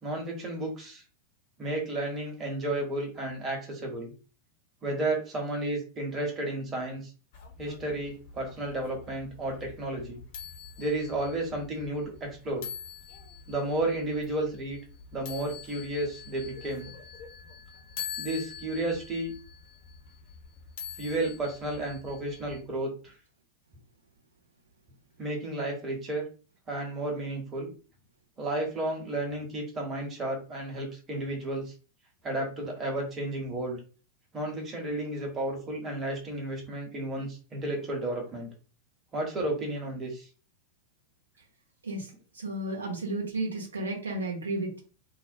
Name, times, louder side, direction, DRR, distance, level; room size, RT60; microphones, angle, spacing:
voice 1, 0.0-1.0 1.6-4.1 4.8-7.1 7.6-10.2 10.8-12.7 13.5-14.8 15.1-16.9 18.2-19.3 21.0-23.1 25.2-26.3 26.7-27.7 28.4-31.7 32.2-33.8 34.3-38.5 39.1-40.3, right 1 dB, 25° right, 0 dB, 0.9 m, -32 dB
sound 1, 7.3-22.6, left 7 dB, 50° left, 0.7 m, -45 dB
voice 2, 41.8-44.8, right 2 dB, 75° right, -1 dB, 0.8 m, -33 dB
2.5 x 2.1 x 2.6 m, 0.36 s
figure-of-eight pair, 90°, 0 cm